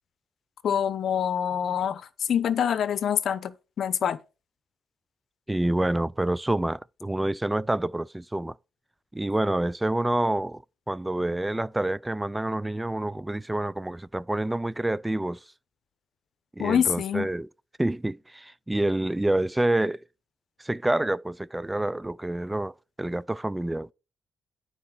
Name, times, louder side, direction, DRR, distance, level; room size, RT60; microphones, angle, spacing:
voice 1, 0.6-4.2 16.6-17.3, left 8 dB, 65° left, 0.8 m, -26 dB
voice 2, 5.5-8.6 9.1-10.6 10.9-15.4 16.5-17.5 17.8-20.0 20.6-23.9, right 1 dB, 10° right, 0.3 m, -27 dB
9.5 x 4.2 x 5.9 m
cardioid pair, 85°, 0 cm